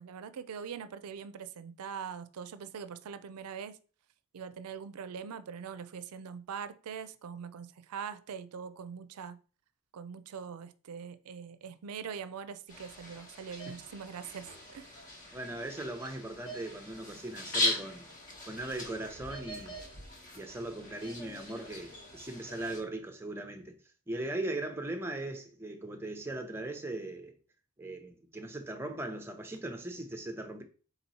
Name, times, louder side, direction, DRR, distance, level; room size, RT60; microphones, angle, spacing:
voice 1, 0.0-3.8 4.3-9.4 9.9-15.0, right 7 dB, 90° right, 0.4 m, -42 dB
sound 1, 12.7-22.8, left 2 dB, 35° left, 1.0 m, -39 dB
voice 2, 15.3-18.1 18.5-19.8 20.3-23.8 24.1-27.3 27.8-30.6, right 2 dB, 10° right, 0.6 m, -39 dB
4.0 x 2.9 x 4.0 m
head